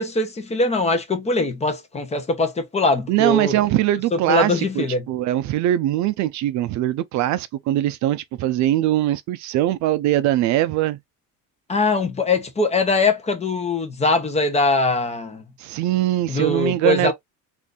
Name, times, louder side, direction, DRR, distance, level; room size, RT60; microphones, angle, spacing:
voice 1, 0.0-3.5 4.1-5.0 11.7-15.4 16.3-17.1, left 3 dB, 20° left, 0.7 m, -22 dB
voice 2, 3.1-11.0 15.6-17.1, right 14 dB, 60° right, 0.4 m, -21 dB
2.5 x 2.5 x 3.7 m
cardioid pair, 140°, 33 cm